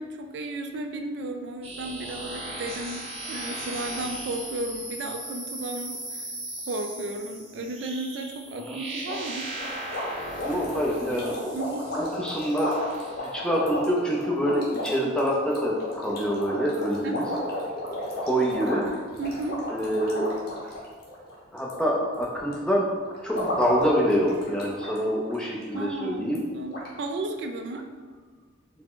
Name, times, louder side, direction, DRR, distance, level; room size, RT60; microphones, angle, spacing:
voice 1, 0.0-6.2 6.7-9.5 11.5-11.9 17.0-17.4 19.2-19.6 25.7-27.9, right 2 dB, 60° right, 5 dB, 0.3 m, -34 dB
sound 1, 1.6-13.3, right 1 dB, 30° right, 0.7 m, -38 dB
sound 2, 9.1-21.8 22.1-22.5 23.0-25.0 25.2-25.4 25.7-25.8 26.4-26.5 26.7-26.9, left 1 dB, 50° left, 0.9 m, -34 dB
voice 2, 10.4-11.5 12.0-12.8 13.2-17.2 18.2-18.9 19.7-20.3 21.5-22.9 23.2-26.4, equal, 5° left, -3 dB, 0.5 m, -26 dB
4.7 x 2.1 x 3.7 m, 1.5 s
head